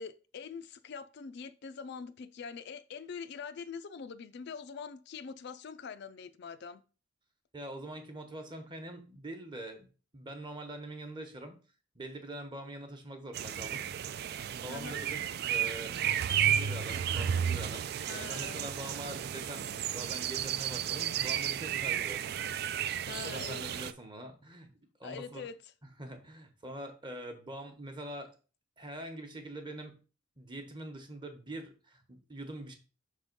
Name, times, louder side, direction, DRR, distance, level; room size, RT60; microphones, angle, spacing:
voice 1, 0.0-6.8 14.7-15.0 18.1-18.7 23.1-23.6 25.0-25.6, left 6 dB, 55° left, 0.4 m, -43 dB
voice 2, 7.5-11.6 11.9-13.9 14.5-22.3 23.2-24.7 25.0-25.5 25.8-28.3 28.8-30.0 30.4-32.7, right 1 dB, 25° right, 1.0 m, -44 dB
sound 1, 13.3-23.9, right 9 dB, 50° right, 0.3 m, -33 dB
5.9 x 3.7 x 5.2 m
head